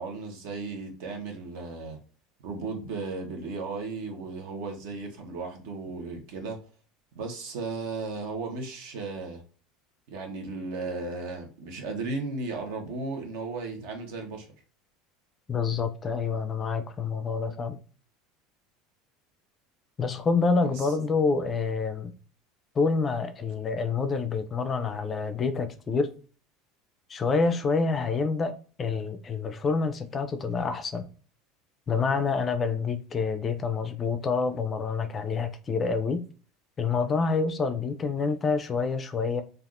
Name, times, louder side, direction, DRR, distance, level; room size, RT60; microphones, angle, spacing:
voice 1, 0.0-2.0 2.4-6.6 7.1-9.4 10.1-14.5 20.6-20.9, right 3 dB, 75° right, 0.9 m, -35 dB
voice 2, 15.5-17.8 20.0-22.1 22.8-26.1 27.1-31.1 31.9-36.2 36.8-39.4, left 4 dB, 25° left, 0.4 m, -27 dB
3.4 x 2.4 x 2.4 m
supercardioid pair, 135°, 0 cm